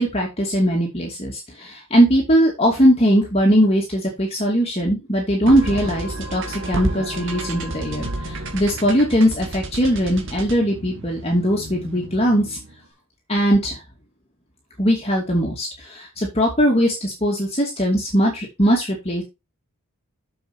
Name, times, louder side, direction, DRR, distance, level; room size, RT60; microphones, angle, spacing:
voice 1, 0.0-12.6 13.3-13.8 14.8-19.2, equal, 30° left, -1 dB, 2.6 m, -20 dB
sound 1, 5.5-12.8, right 2 dB, 60° right, 2.3 m, -31 dB
7.4 x 7.2 x 4.4 m, 0.23 s
head